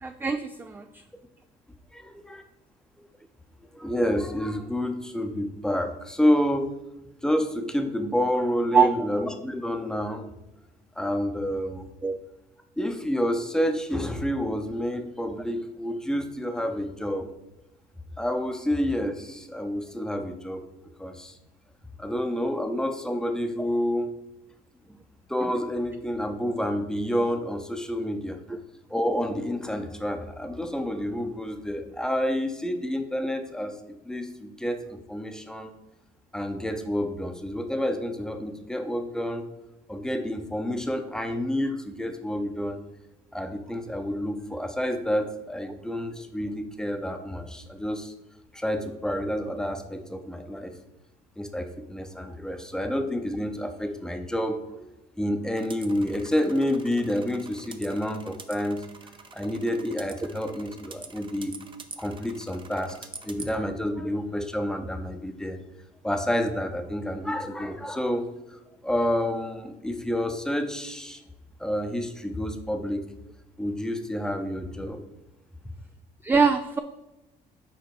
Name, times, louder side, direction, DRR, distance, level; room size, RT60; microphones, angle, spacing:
voice 1, 0.0-0.8 8.7-9.0 12.0-12.2 76.2-76.8, right 5 dB, 10° right, 8 dB, 0.3 m, -22 dB
voice 2, 3.7-6.7 7.2-10.3 11.0-11.9 12.8-17.3 18.2-20.6 21.0-21.4 22.0-24.2 24.9-25.0 25.3-28.6 28.9-33.7 34.0-35.7 36.3-39.4 39.9-42.8 43.3-48.1 48.5-50.7 51.4-58.8 59.3-61.5 62.0-65.6 66.0-71.2 71.6-73.0 73.6-75.0, equal, 5° left, 6 dB, 0.8 m, -29 dB
sound 1, 55.5-63.6, right 5 dB, 30° right, 0.7 m, -46 dB
6.9 x 4.3 x 4.8 m, 0.98 s
cardioid pair, 110°, 17 cm